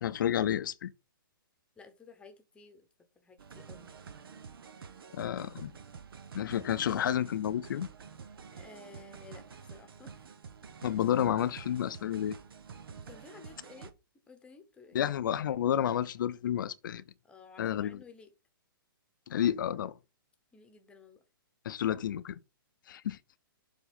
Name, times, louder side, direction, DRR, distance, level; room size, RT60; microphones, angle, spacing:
voice 1, 0.0-0.9 5.1-5.7 6.3-7.9 10.8-12.4 14.9-17.0 17.6-18.0 19.3-20.0 21.6-22.4 22.9-23.2, left 10 dB, 60° left, 0.6 m, -30 dB
voice 2, 1.8-2.9 3.1-3.9 8.5-10.3 13.1-13.9 14.3-15.0 17.2-18.3 20.5-21.2, left 4 dB, 10° left, 1.1 m, -54 dB
sound 1, 3.4-13.9, right 6 dB, 75° right, 1.2 m, -49 dB
7.2 x 3.8 x 5.4 m
hypercardioid pair, 150°, 12 cm